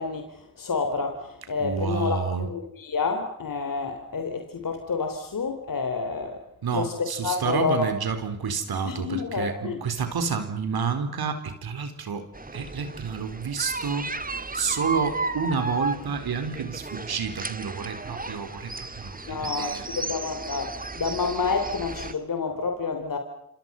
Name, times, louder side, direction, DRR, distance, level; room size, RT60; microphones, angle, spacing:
voice 1, 0.0-6.4 6.7-6.9 7.2-7.9 8.8-9.8 19.3-23.2, left 4 dB, 55° left, 5 dB, 3.7 m, -29 dB
voice 2, 1.6-2.5 6.6-12.3 12.5-14.1 14.5-19.8, right 6 dB, 70° right, 8 dB, 4.2 m, -29 dB
sound 1, 12.3-22.1, right 3 dB, 20° right, 2.0 m, -34 dB
27.5 x 26.5 x 5.6 m, 0.81 s
supercardioid pair, 45°, 39 cm